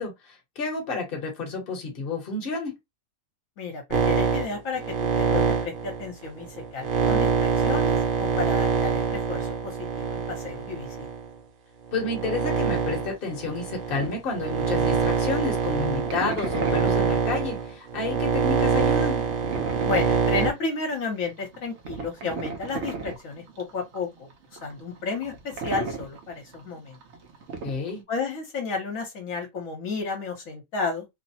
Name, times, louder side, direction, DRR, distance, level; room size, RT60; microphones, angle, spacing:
voice 1, 0.0-2.8 11.9-19.2 27.6-28.0, left 3 dB, 45° left, 1.1 m, -30 dB
voice 2, 3.6-4.8 5.1-11.1 19.8-27.0 28.1-31.1, left 4 dB, 70° left, 1.3 m, -32 dB
sound 1, 3.9-11.3 11.9-20.5, right 5 dB, 90° right, 1.2 m, -25 dB
sound 2, 12.6-15.2 15.5-28.0, right 4 dB, 60° right, 0.9 m, -37 dB
3.0 x 2.1 x 2.7 m
omnidirectional pair, 1.5 m